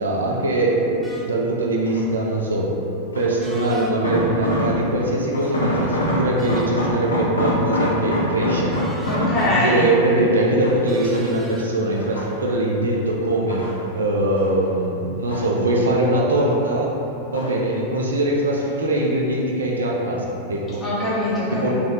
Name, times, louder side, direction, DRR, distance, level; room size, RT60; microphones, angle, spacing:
voice 1, 0.0-2.7 3.1-8.8 9.4-13.6 13.9-16.9 17.3-20.8 21.5-21.7, right 1 dB, 70° right, -2 dB, 0.4 m, -22 dB
sound 1, 1.0-1.3 3.4-3.9 6.4-6.8 8.7-9.5 10.9-11.7, right 1 dB, 5° right, 0.3 m, -39 dB
sound 2, 1.9-2.2 3.1-5.0 5.3-10.1 10.6-11.5 11.9-12.7 13.2-14.6 14.9-16.0 16.3-16.9 17.3-17.7 18.0-18.1, left 1 dB, 75° left, 0.5 m, -25 dB
voice 2, 9.1-9.9 20.8-21.7, left 1 dB, 15° left, -10 dB, 1.1 m, -22 dB
3.1 x 2.6 x 2.4 m, 2.9 s
figure-of-eight pair, 90°, 0 cm